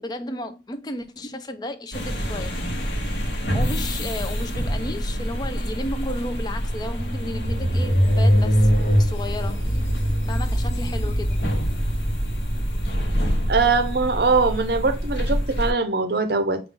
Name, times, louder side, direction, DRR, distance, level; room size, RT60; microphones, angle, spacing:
voice 1, 0.0-2.5 3.5-8.7 9.0-9.6 10.3-11.4, left 1 dB, 25° left, 0.3 m, -33 dB
sound 1, 1.9-15.7, equal, 85° left, 0.9 m, -27 dB
sound 2, 6.5-14.9, equal, 50° left, 0.9 m, -23 dB
voice 2, 13.5-16.6, right 4 dB, 60° right, 0.6 m, -21 dB
5.0 x 2.4 x 3.4 m
head